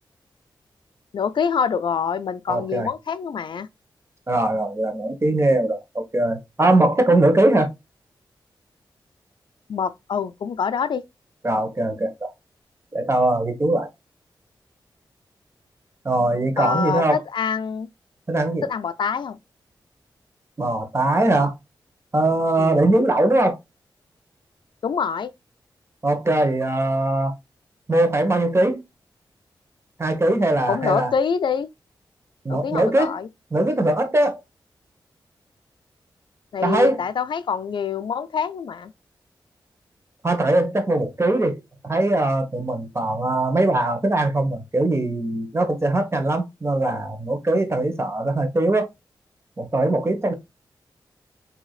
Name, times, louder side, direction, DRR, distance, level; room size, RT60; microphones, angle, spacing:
voice 1, 1.1-3.7 9.7-11.0 16.6-17.9 18.6-19.4 22.6-23.0 24.8-25.3 30.7-31.7 32.5-33.3 36.5-38.9, left 6 dB, 70° left, 0.4 m, -25 dB
voice 2, 2.5-2.9 4.3-7.7 11.4-12.3 12.9-13.9 16.0-17.2 18.3-18.7 20.6-21.5 22.1-23.6 26.0-27.3 27.9-28.8 30.0-31.1 32.4-33.1 33.5-34.4 36.6-37.0 40.2-48.9 49.6-50.3, right 2 dB, 30° right, 1.2 m, -21 dB
4.7 x 2.8 x 2.4 m
cardioid pair, 50°, 8 cm